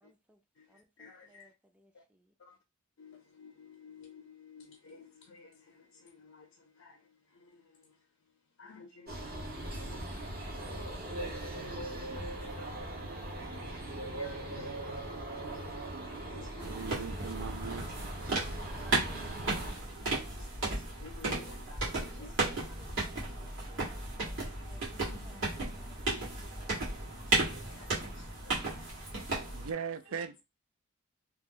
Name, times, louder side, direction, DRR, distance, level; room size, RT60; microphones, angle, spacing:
voice 1, 0.0-0.4 0.7-2.2 18.6-19.2 22.2-24.3 24.6-26.5, right 1 dB, 5° right, 0.4 m, -62 dB
voice 2, 0.6-1.5 1.9-2.0 2.4-2.6 3.0-8.0 8.6-10.4 11.4-11.8 12.1-12.8 13.7-14.9 15.4-15.8 16.0-16.9 20.1-22.8 24.6-25.7 27.2-29.7 30.1-30.3, left 4 dB, 75° left, 0.5 m, -55 dB
sound 1, 9.1-19.7, right 1 dB, 45° right, 0.8 m, -40 dB
sound 2, 16.6-29.7, right 2 dB, 60° right, 1.5 m, -35 dB
voice 3, 16.6-17.9 29.5-30.4, right 6 dB, 75° right, 0.4 m, -39 dB
2.9 x 2.0 x 3.6 m
head